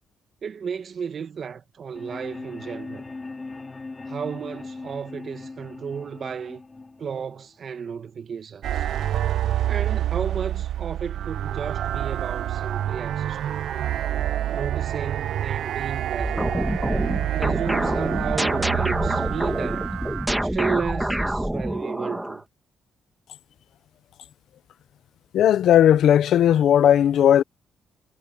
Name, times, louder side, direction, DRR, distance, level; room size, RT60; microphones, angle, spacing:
voice 1, 0.4-3.1 4.1-6.6 7.0-8.9 9.7-13.6 14.5-16.5 17.3-20.0 20.4-22.4, right 6 dB, 50° right, 1.8 m, -33 dB
sound 1, 1.9-7.9, left 3 dB, 25° left, 3.1 m, -39 dB
sound 2, 8.6-20.3, right 11 dB, 70° right, 0.6 m, -27 dB
sound 3, 16.2-22.4, right 1 dB, 5° right, 1.9 m, -26 dB
voice 2, 25.3-27.4, left 10 dB, 70° left, 0.7 m, -16 dB
cardioid pair, 90°, 0 cm